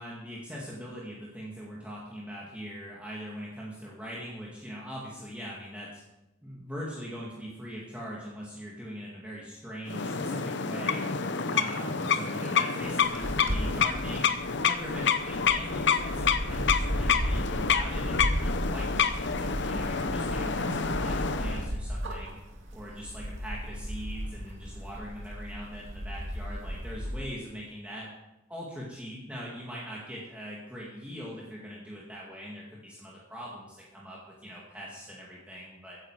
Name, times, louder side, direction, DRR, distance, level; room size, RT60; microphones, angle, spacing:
voice 1, 0.0-6.0 6.4-11.0 11.5-14.3 14.6-22.4 22.7-28.1 28.5-36.0, equal, 5° right, -5 dB, 2.2 m, -41 dB
sound 1, 9.9-21.7, left 6 dB, 60° left, 0.8 m, -28 dB
sound 2, 12.8-27.2, equal, 65° right, 2.3 m, -35 dB
15.5 x 10.5 x 4.8 m, 0.98 s
head